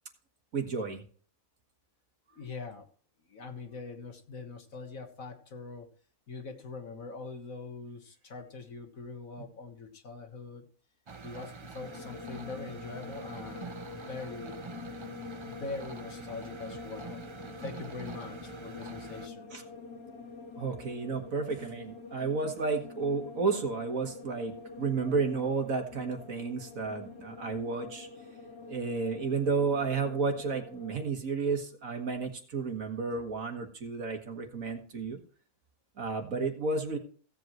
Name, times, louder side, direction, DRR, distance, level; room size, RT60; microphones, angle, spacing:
voice 1, 0.5-1.0 19.5-19.6 20.6-28.1 28.7-35.2 36.0-37.0, right 4 dB, 60° right, 4 dB, 2.1 m, -32 dB
voice 2, 2.4-2.9 3.3-5.9 6.3-10.7 11.2-14.6 15.4-17.2 17.6-19.5, left 4 dB, 65° left, 5 dB, 1.9 m, -43 dB
sound 1, 11.1-19.3, right 4 dB, 40° right, 0.4 m, -46 dB
sound 2, 11.8-31.1, left 4 dB, 85° left, 2.4 m, -46 dB
16.5 x 7.9 x 3.1 m, 0.43 s
omnidirectional pair, 1.6 m